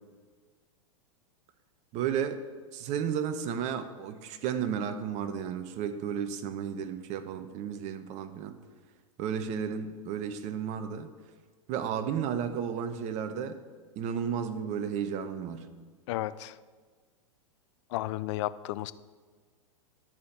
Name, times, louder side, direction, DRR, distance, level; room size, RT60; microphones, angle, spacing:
voice 1, 1.9-2.4 2.7-8.6 9.2-11.1 11.7-13.6 14.0-15.7, right 8 dB, 40° right, 9 dB, 0.9 m, -33 dB
voice 2, 16.1-16.6 17.9-18.9, left 15 dB, 60° left, 16 dB, 0.5 m, -33 dB
11.0 x 4.4 x 8.0 m, 1.5 s
hypercardioid pair, 105°, 17 cm